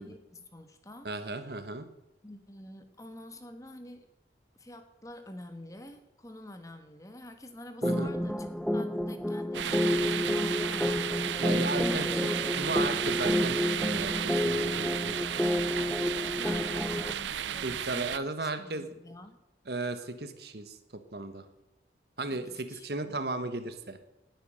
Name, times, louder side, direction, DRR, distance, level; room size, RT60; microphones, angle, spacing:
voice 1, 0.0-1.5 2.2-4.1 4.6-8.5 8.7-13.3 16.4-19.4 22.3-23.2, left 1 dB, 20° left, 8 dB, 1.4 m, -48 dB
voice 2, 1.0-1.9 7.8-8.1 11.4-15.2 17.6-18.9 19.7-21.5 22.2-24.0, right 2 dB, 60° right, 10 dB, 1.4 m, -35 dB
sound 1, 7.8-17.1, left 1 dB, 5° left, 0.5 m, -30 dB
sound 2, 9.5-18.2, right 9 dB, 85° right, 0.5 m, -33 dB
19.0 x 9.2 x 6.5 m, 0.96 s
head